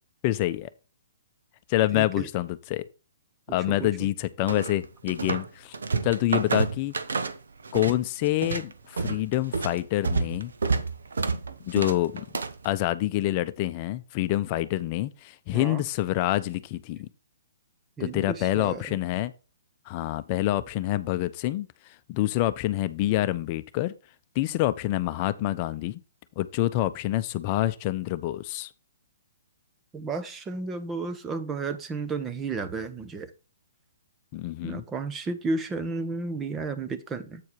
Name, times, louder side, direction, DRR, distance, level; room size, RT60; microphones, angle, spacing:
voice 1, 0.2-0.7 1.7-2.8 3.5-5.7 6.0-6.9 7.7-10.5 11.6-12.3 12.6-17.1 18.0-19.3 19.9-21.7 22.1-23.9 24.3-26.0 26.4-28.7 34.3-34.8, left 15 dB, 35° left, 0.7 m, -27 dB
voice 2, 1.9-2.3 3.8-3.9 15.5-15.8 18.0-18.8 29.9-33.3 34.6-37.4, right 3 dB, 15° right, 1.0 m, -32 dB
sound 1, 4.5-5.5 5.7-8.0 8.3-12.7, right 4 dB, 80° right, 1.1 m, -29 dB
8.6 x 4.6 x 4.7 m
hypercardioid pair, 135°, 0 cm